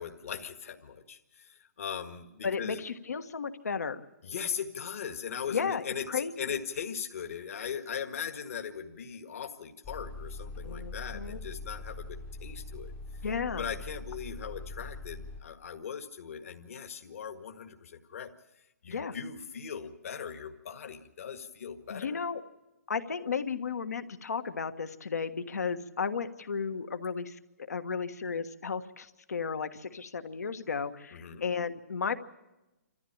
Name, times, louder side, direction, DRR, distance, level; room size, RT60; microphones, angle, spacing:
voice 1, 0.0-2.8 4.2-12.9 13.6-18.3 18.8-22.2 31.1-31.4, left 7 dB, 60° left, 6 dB, 1.7 m, -39 dB
voice 2, 2.4-4.0 5.5-6.5 10.6-11.4 13.2-13.7 18.9-19.1 21.9-22.4 22.9-27.4 27.7-32.2, left 6 dB, 85° left, 8 dB, 1.5 m, -34 dB
sound 1, 9.8-15.4, left 2 dB, 15° left, 0.8 m, -42 dB
27.5 x 14.0 x 8.8 m, 1.0 s
hypercardioid pair, 160°, 8 cm